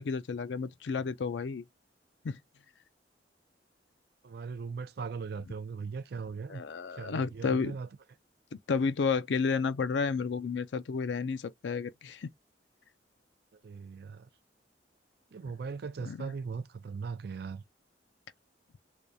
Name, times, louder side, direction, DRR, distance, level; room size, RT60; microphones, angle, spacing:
voice 1, 0.0-1.6 2.2-2.4 6.5-7.8 8.5-12.3 16.1-16.3, left 5 dB, 80° left, 0.4 m, -31 dB
voice 2, 4.2-6.6 6.9-7.9 13.6-14.3 15.3-17.6, right 5 dB, 60° right, 0.4 m, -39 dB
3.4 x 3.4 x 2.6 m
head